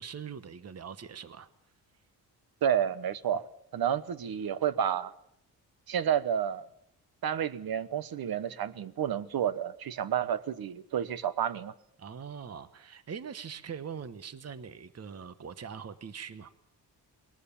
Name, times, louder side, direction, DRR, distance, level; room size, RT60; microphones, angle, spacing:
voice 1, 0.0-1.5 12.0-16.5, right 7 dB, 40° right, 13 dB, 1.1 m, -42 dB
voice 2, 2.6-3.5 3.7-5.1 5.9-6.7 7.2-11.7, right 9 dB, 65° right, 16 dB, 1.1 m, -30 dB
21.0 x 18.5 x 7.2 m, 0.75 s
cardioid pair, 110°, 39 cm